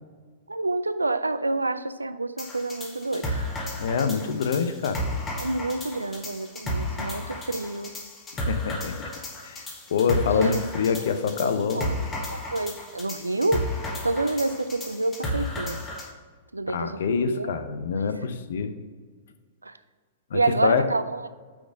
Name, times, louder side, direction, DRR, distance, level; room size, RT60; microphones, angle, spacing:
voice 1, 0.5-3.5 5.4-7.9 10.3-10.6 11.0-11.1 11.4-13.7 14.0-15.8 16.5-17.5 19.6-19.8 20.3-21.3, right 2 dB, 90° right, 13 dB, 0.3 m, -28 dB
sound 1, 2.4-16.1, left 1 dB, 20° left, 1.3 m, -33 dB
voice 2, 3.8-5.0 8.5-9.1 9.4-11.9 16.7-18.7 20.3-20.8, left 6 dB, 65° left, 9 dB, 0.6 m, -26 dB
5.9 x 4.0 x 5.0 m, 1.5 s
figure-of-eight pair, 105°, 0 cm